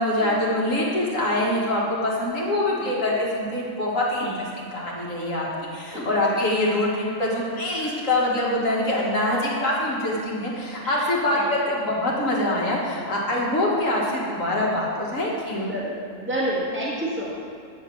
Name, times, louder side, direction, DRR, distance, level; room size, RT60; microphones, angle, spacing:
voice 1, 0.0-15.8, left 1 dB, 70° left, -4 dB, 2.1 m, -24 dB
voice 2, 15.6-17.3, right 1 dB, 10° right, -7 dB, 1.8 m, -29 dB
9.8 x 5.8 x 6.7 m, 2.3 s
omnidirectional pair, 1.4 m